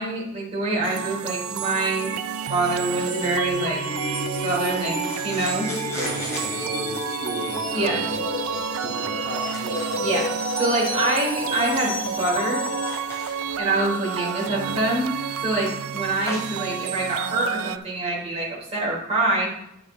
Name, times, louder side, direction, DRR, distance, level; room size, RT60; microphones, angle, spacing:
voice 1, 0.0-2.1 2.5-3.8 4.4-4.9 5.2-5.7 7.7-8.0 9.9-10.2 10.5-12.7 13.6-15.1 15.4-19.5, right 2 dB, 30° right, -4 dB, 3.4 m, -25 dB
sound 1, 0.8-17.8, right 8 dB, 90° right, 0.4 m, -30 dB
sound 2, 3.1-13.0, left 2 dB, 70° left, 2.5 m, -31 dB
sound 3, 3.5-17.0, equal, 15° left, 3.7 m, -42 dB
voice 2, 5.9-10.0, right 1 dB, 45° right, -6 dB, 1.7 m, -36 dB
9.6 x 6.9 x 3.7 m, 0.83 s
head